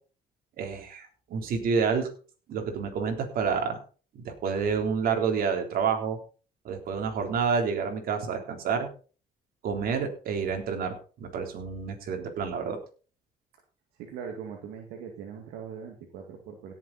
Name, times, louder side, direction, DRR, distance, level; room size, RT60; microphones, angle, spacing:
voice 1, 0.6-2.1 2.5-3.8 4.2-6.2 6.7-8.9 9.6-12.8, right 6 dB, 65° right, 4 dB, 3.6 m, -29 dB
voice 2, 14.0-16.7, right 7 dB, 90° right, 2 dB, 2.1 m, -41 dB
17.0 x 7.5 x 4.2 m, 0.37 s
cardioid pair, 95°, 16 cm